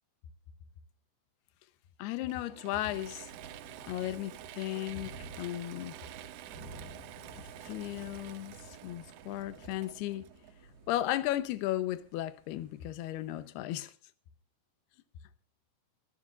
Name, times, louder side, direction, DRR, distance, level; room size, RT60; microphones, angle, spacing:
voice 1, 2.0-3.3 3.9-6.0 7.6-8.6 8.8-10.3 10.9-13.9, left 14 dB, 80° left, 2.9 m, -35 dB
Mechanisms / Drill, 2.3-10.9, right 14 dB, 80° right, 2.7 m, -49 dB
Thunder / Rain, 2.8-13.5, right 1 dB, 50° right, 9.4 m, -53 dB
25.0 x 13.5 x 2.5 m
omnidirectional pair, 4.7 m